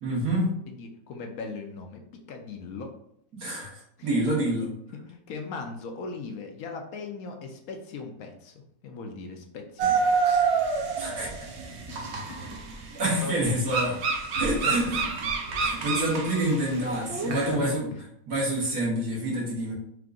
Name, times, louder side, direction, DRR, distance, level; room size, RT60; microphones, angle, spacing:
voice 1, 0.0-0.5 3.3-4.7 11.0-11.3 12.9-14.0 14.4-15.0 15.6-17.9 18.3-19.7, right 1 dB, 75° right, -4 dB, 1.9 m, -27 dB
voice 2, 0.7-2.9 4.0-4.1 5.0-10.4 10.8-11.1 11.7-12.6 13.2-13.5 14.6-14.8 17.2-18.0, left 4 dB, 75° left, 3 dB, 1.1 m, -39 dB
sound 1, 9.8-17.6, right 5 dB, 55° right, 0.9 m, -28 dB
4.7 x 2.5 x 3.7 m, 0.72 s
omnidirectional pair, 1.6 m